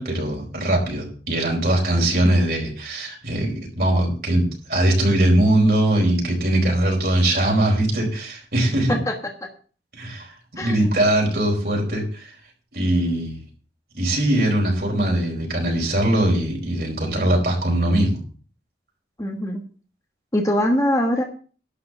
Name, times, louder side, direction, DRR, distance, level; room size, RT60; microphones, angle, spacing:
voice 1, 0.0-9.0 9.9-10.3 10.6-12.3 12.7-13.4 13.9-18.2, right 1 dB, 55° right, -1 dB, 4.7 m, -21 dB
voice 2, 10.6-10.9 19.2-19.6 20.3-21.2, left 1 dB, 20° left, 3 dB, 1.3 m, -22 dB
11.5 x 5.1 x 8.0 m, 0.40 s
head